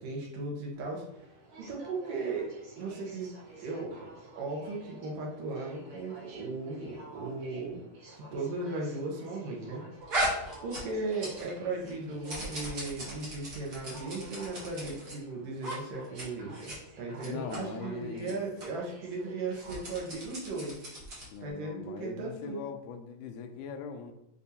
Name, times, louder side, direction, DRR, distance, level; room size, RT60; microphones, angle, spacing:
voice 1, 0.0-1.0 1.6-4.1 4.4-9.8 10.1-10.3 10.6-20.8 21.4-22.6, right 3 dB, 65° right, -2 dB, 1.6 m, -37 dB
Aircraft, 0.7-20.1, right 2 dB, 85° right, 2.7 m, -51 dB
sound 1, 10.1-11.6 11.8-15.1 15.6-15.8 16.0-16.2 16.5-16.8 17.2-17.6 18.2-18.3 18.6-18.7 19.5-21.4, right 1 dB, 50° right, 1.2 m, -37 dB
voice 2, 17.2-18.4 21.3-24.1, left 6 dB, 80° left, 5 dB, 1.5 m, -41 dB
6.1 x 2.6 x 2.7 m, 0.85 s
omnidirectional pair, 3.4 m